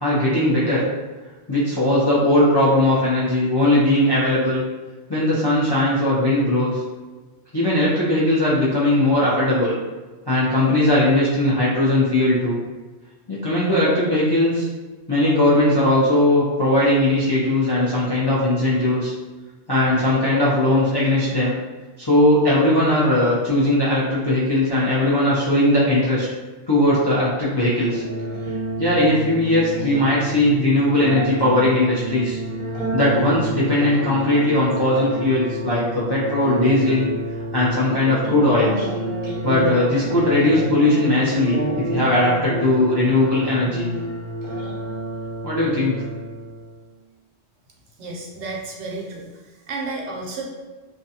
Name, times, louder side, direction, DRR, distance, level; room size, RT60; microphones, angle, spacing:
voice 1, 0.0-0.8 1.5-4.6 5.1-6.8 7.5-9.7 10.3-12.6 13.3-14.7 15.1-19.1 19.7-21.5 22.0-26.3 26.7-28.0 28.8-32.4 32.9-37.1 37.5-38.8 39.4-43.9 45.4-46.0, left 1 dB, 40° left, -9 dB, 0.4 m, -19 dB
sound 1, 27.9-46.8, right 1 dB, 50° right, 0.7 m, -29 dB
voice 2, 48.0-49.3 49.7-50.5, right 3 dB, 80° right, -1 dB, 0.9 m, -31 dB
2.5 x 2.2 x 2.7 m, 1.3 s
omnidirectional pair, 1.2 m